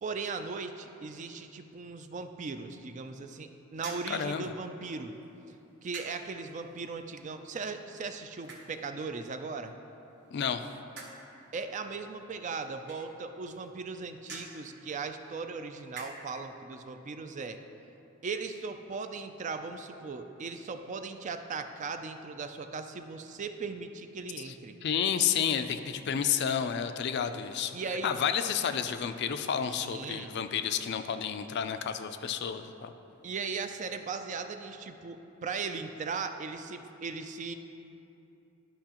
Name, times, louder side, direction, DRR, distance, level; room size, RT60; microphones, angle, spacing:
voice 1, 0.0-5.2 5.8-9.8 11.5-17.6 18.2-24.8 27.7-28.2 29.7-30.3 33.2-37.5, right 4 dB, 35° right, 8 dB, 0.3 m, -38 dB
sound 1, 3.7-16.5, right 3 dB, 55° right, 1.1 m, -51 dB
voice 2, 4.1-4.4 10.3-10.6 24.8-27.8 28.0-32.9, left 8 dB, 55° left, 9 dB, 0.4 m, -30 dB
12.0 x 5.5 x 2.9 m, 2.9 s
head